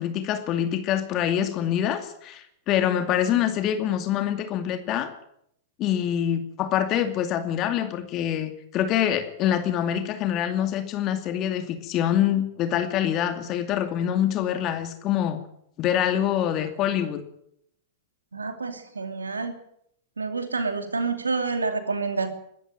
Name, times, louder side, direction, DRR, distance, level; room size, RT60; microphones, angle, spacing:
voice 1, 0.0-5.1 5.8-15.4 15.8-17.2, left 10 dB, 40° left, 7 dB, 2.4 m, -25 dB
voice 2, 18.3-19.5 20.2-22.3, right 4 dB, 85° right, 7 dB, 2.9 m, -28 dB
22.5 x 13.5 x 9.1 m, 0.72 s
figure-of-eight pair, 100°, 0 cm